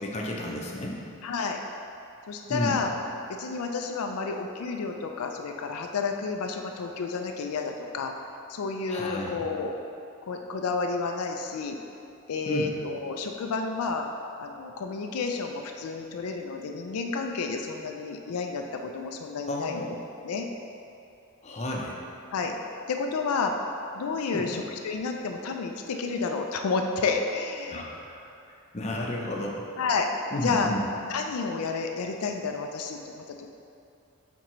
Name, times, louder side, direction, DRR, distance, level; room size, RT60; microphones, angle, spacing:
voice 1, 0.0-1.0 2.5-2.8 8.9-9.4 12.5-12.7 19.5-19.9 21.4-22.0 24.3-24.5 27.7-28.2 28.5-29.7 30.3-30.8, left 1 dB, 30° left, -2 dB, 0.6 m, -32 dB
voice 2, 1.2-1.6 2.3-2.9 3.4-8.1 8.5-9.7 10.2-11.8 12.3-14.1 14.4-19.8 20.2-20.5 22.3-22.5 22.9-23.5 23.9-27.8 29.8-30.1 30.4-30.7 31.1-33.5, left 4 dB, 85° left, 3 dB, 0.4 m, -30 dB
7.3 x 4.4 x 3.0 m, 2.7 s
head